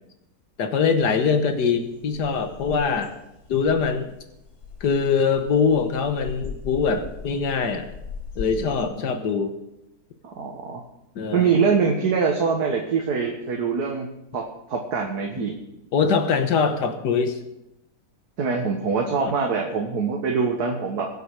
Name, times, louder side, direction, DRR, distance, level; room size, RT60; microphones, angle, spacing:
voice 1, 0.6-3.1 3.5-4.2 4.8-7.9 8.4-9.6 11.2-11.5 15.9-17.4 19.2-19.3, left 5 dB, 90° left, 7 dB, 1.8 m, -23 dB
sound 1, 0.9-8.8, left 5 dB, 65° left, 2.3 m, -40 dB
voice 2, 10.4-10.8 11.3-14.4 14.7-15.5 18.4-21.1, right 5 dB, 75° right, 1 dB, 2.0 m, -24 dB
23.0 x 8.0 x 4.8 m, 0.88 s
omnidirectional pair, 1.7 m